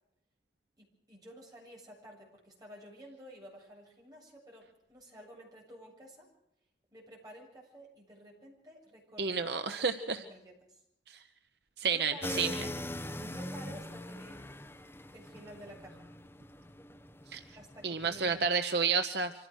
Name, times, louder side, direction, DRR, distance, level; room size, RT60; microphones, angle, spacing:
voice 1, 0.8-6.3 6.9-9.4 9.8-9.9 10.1-10.8 11.8-12.5 13.2-14.4 15.1-16.1 17.6-18.5, equal, 20° right, -2 dB, 7.4 m, -52 dB
voice 2, 9.2-10.2 11.1-11.2 11.8-12.5 17.3-17.4 17.8-19.3, right 5 dB, 65° right, 7 dB, 1.1 m, -30 dB
sound 1, 12.2-18.5, left 1 dB, 15° left, 1.0 m, -42 dB
25.5 x 16.0 x 6.5 m, 0.81 s
head